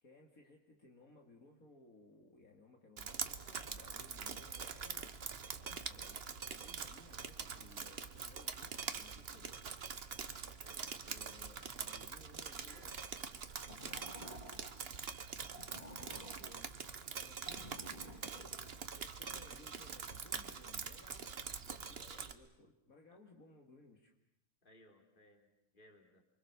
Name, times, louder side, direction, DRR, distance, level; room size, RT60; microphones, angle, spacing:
voice 1, 0.0-5.1 5.6-6.2 6.5-9.7 11.0-13.0 13.6-14.7 15.5-16.7 17.1-18.1 18.6-21.3 21.9-24.1, left 3 dB, 70° left, 2 dB, 2.8 m, -61 dB
Drip, 3.0-22.3, right 6 dB, 45° right, 1.3 m, -44 dB
voice 2, 10.6-11.0 23.1-23.2 24.6-26.2, left 1 dB, 35° left, 3 dB, 3.7 m, -64 dB
sound 1, 13.6-14.7 15.4-16.6 17.2-18.7, equal, 25° right, 3.0 m, -52 dB
29.0 x 24.0 x 7.1 m, 0.83 s
omnidirectional pair, 1.6 m